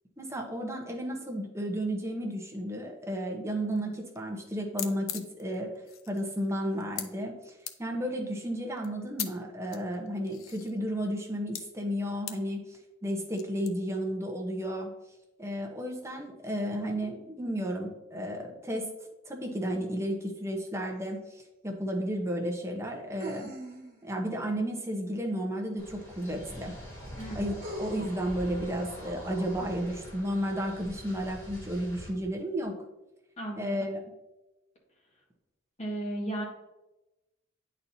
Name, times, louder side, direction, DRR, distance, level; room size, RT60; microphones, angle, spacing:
voice 1, 0.2-5.7 6.1-14.9 15.4-18.9 19.3-23.5 24.0-26.7 27.3-32.7 33.6-34.0, equal, 15° right, 1 dB, 0.8 m, -33 dB
sound 1, 3.7-4.2 4.5-4.6 4.7-7.1 7.7-7.8 8.8-9.3 9.7-10.8 11.5-11.6 12.3-12.4 13.4-13.7, left 10 dB, 90° left, 0.5 m, -38 dB
sound 2, 21.1-21.2 23.2-24.1 26.0-26.1 27.6-28.3, equal, 45° right, 1.4 m, -40 dB
sound 3, 25.8-32.1, equal, 15° left, 2.1 m, -45 dB
voice 2, 27.2-27.6 33.4-33.8 35.8-36.5, right 1 dB, 35° left, -2 dB, 1.6 m, -35 dB
9.6 x 4.3 x 2.7 m, 0.99 s
head